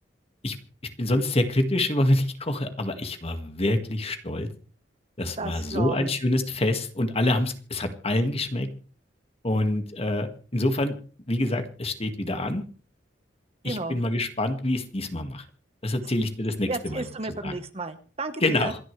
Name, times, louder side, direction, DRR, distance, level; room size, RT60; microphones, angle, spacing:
voice 1, 1.0-4.5 5.2-8.7 9.4-11.0 11.3-12.6 13.6-15.4 15.8-17.0 17.4-17.5 18.4-18.8, left 1 dB, 35° left, 7 dB, 1.9 m, -26 dB
voice 2, 5.4-6.1 13.6-13.9 16.0-16.1 16.7-18.7, right 3 dB, 35° right, 9 dB, 1.2 m, -33 dB
27.0 x 10.5 x 3.3 m, 0.40 s
head